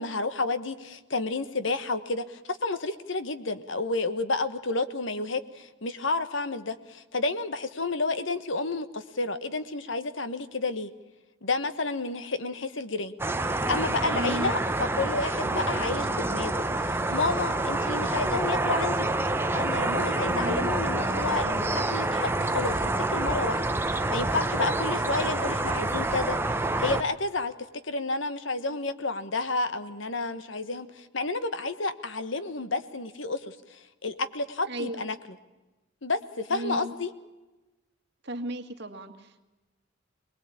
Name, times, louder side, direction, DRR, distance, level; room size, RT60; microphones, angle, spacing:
voice 1, 0.0-10.9 11.4-13.1 13.7-14.6 14.9-19.1 19.5-23.6 23.9-26.4 26.8-27.5 27.8-35.1 36.0-37.1, left 3 dB, 70° left, 12 dB, 1.4 m, -30 dB
sound 1, 13.2-27.0, right 2 dB, 10° right, 0.8 m, -27 dB
voice 2, 14.1-14.6 20.3-20.8 34.6-35.1 36.5-36.9 38.2-39.4, right 1 dB, 55° right, 6 dB, 1.9 m, -35 dB
23.5 x 20.5 x 8.7 m, 1.1 s
head